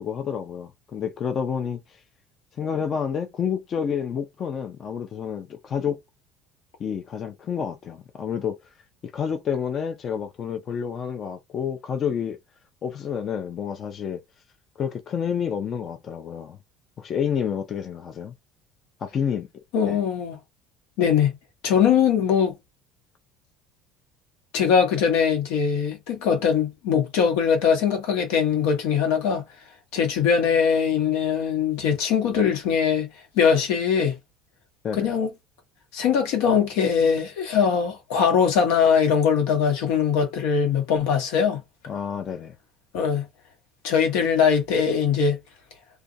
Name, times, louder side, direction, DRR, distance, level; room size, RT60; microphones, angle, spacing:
voice 1, 0.0-1.8 2.6-6.0 6.8-8.6 9.0-12.4 12.8-14.2 14.8-16.6 17.0-18.3 19.0-19.5 19.8-20.0 34.8-35.1 41.9-42.6, left 7 dB, 35° left, 0.4 m, -29 dB
voice 2, 19.7-20.4 21.0-21.3 21.6-22.5 24.5-29.4 29.9-33.1 33.3-34.2 34.9-35.3 35.9-41.6 42.9-43.2 43.8-45.4, left 7 dB, 85° left, 1.0 m, -21 dB
2.4 x 2.2 x 2.7 m
cardioid pair, 145°, 0 cm